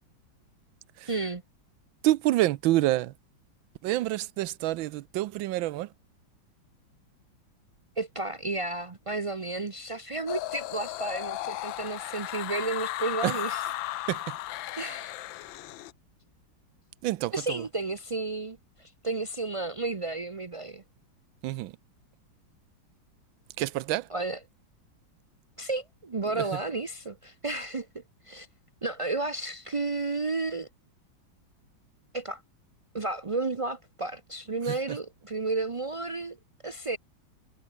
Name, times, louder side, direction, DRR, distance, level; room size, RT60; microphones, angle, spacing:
voice 1, 1.1-1.4 8.0-13.6 14.0-14.1 14.8-15.1 17.3-20.8 24.1-24.4 25.6-28.5 28.8-30.7 32.1-32.4 32.9-36.4 36.6-37.0, right 3 dB, 55° right, 0.3 m, -32 dB
voice 2, 2.0-3.1 3.8-5.9 13.2-13.4 14.1-14.4 17.0-17.7 21.4-21.8 23.6-24.1 26.3-26.6 34.6-35.0, right 16 dB, 90° right, 1.4 m, -28 dB
sound 1, 10.3-15.9, left 15 dB, 80° left, 1.4 m, -35 dB
omnidirectional pair, 2.1 m